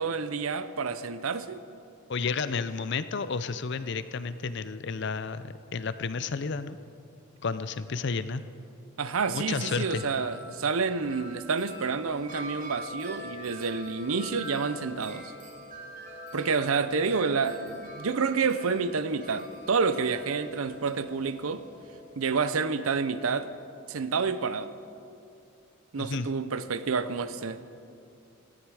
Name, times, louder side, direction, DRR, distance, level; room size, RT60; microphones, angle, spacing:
voice 1, 0.0-1.6 9.0-15.3 16.3-21.6 22.2-23.5 23.9-24.7 25.9-27.6, right 5 dB, 80° right, 13 dB, 0.7 m, -29 dB
voice 2, 2.1-6.8 7.4-8.4 9.3-10.0 26.0-26.3, left 4 dB, 55° left, 13 dB, 0.5 m, -31 dB
Wind chime, 9.1-22.4, equal, 35° right, 2.4 m, -44 dB
18.5 x 13.5 x 4.9 m, 2.6 s
head